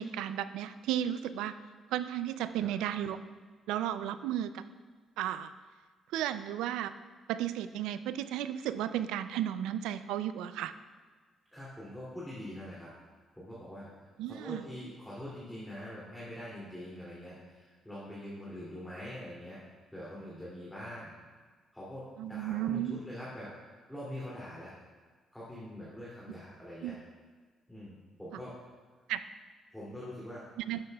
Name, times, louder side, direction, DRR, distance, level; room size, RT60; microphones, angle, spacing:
voice 1, 0.0-1.5 1.9-3.2 3.7-4.6 5.2-5.5 6.1-6.9 7.3-10.7 14.2-14.6 22.2-23.0 26.8-27.0 29.1-29.2 30.6-30.8, right 11 dB, 85° right, 12 dB, 0.3 m, -34 dB
voice 2, 11.5-12.9 13.4-14.1 14.4-19.6 19.9-21.1 21.7-24.7 25.3-27.0 27.7-28.5 29.7-30.4, left 1 dB, 5° left, -8 dB, 2.6 m, -44 dB
11.5 x 7.7 x 2.3 m, 1.5 s
supercardioid pair, 70°, 0 cm